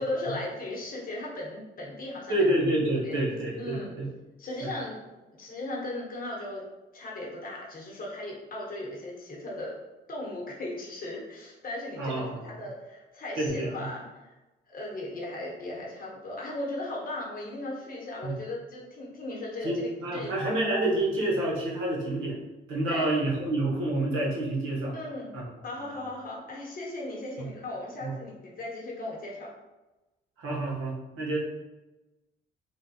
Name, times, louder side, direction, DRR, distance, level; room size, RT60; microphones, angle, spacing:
voice 1, 0.0-2.3 3.0-3.2 3.6-4.0 4.4-5.0 5.4-6.6 6.9-9.7 10.1-14.3 14.7-20.5 22.9-23.1 24.9-25.3 25.6-29.5, left 1 dB, 45° left, -4 dB, 1.0 m, -37 dB
voice 2, 2.3-4.1 4.6-4.7 12.0-12.6 13.4-13.9 18.2-18.3 19.6-22.4 22.7-24.9 25.3-25.4 25.8-26.0 27.4-27.5 28.0-28.1 30.4-31.4, right 1 dB, 85° right, -4 dB, 0.9 m, -28 dB
3.2 x 2.2 x 2.6 m, 1.1 s
cardioid pair, 90°, 20 cm